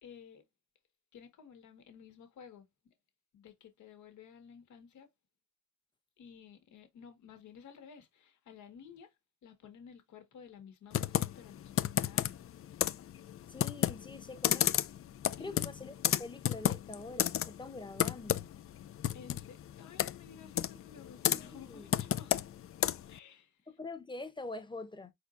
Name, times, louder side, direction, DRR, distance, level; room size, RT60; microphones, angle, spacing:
voice 1, 0.0-0.5 1.1-2.7 3.3-5.1 6.2-9.2 9.4-12.5 15.4-15.7 19.1-22.3 23.1-23.7, left 7 dB, 70° left, 1.8 m, -53 dB
Computer keyboard, 10.9-23.2, left 11 dB, 45° left, 0.5 m, -33 dB
voice 2, 13.5-14.8 15.4-18.5 21.3-21.9 23.7-25.1, left 2 dB, 15° left, 1.1 m, -45 dB
4.7 x 4.3 x 2.6 m
cardioid pair, 90°, 30 cm